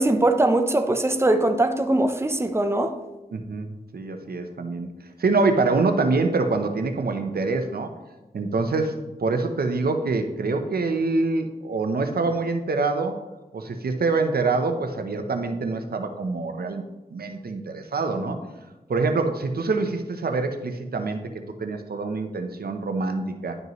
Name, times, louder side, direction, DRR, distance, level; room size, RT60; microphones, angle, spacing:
voice 1, 0.0-2.9, right 2 dB, 15° right, 0.7 m, -21 dB
voice 2, 3.3-4.9 5.2-7.9 8.3-13.2 13.5-16.8 17.1-18.4 18.9-21.2 21.6-23.6, right 3 dB, 85° right, 0.7 m, -25 dB
11.0 x 5.3 x 3.1 m
wide cardioid pair, 50°, 16 cm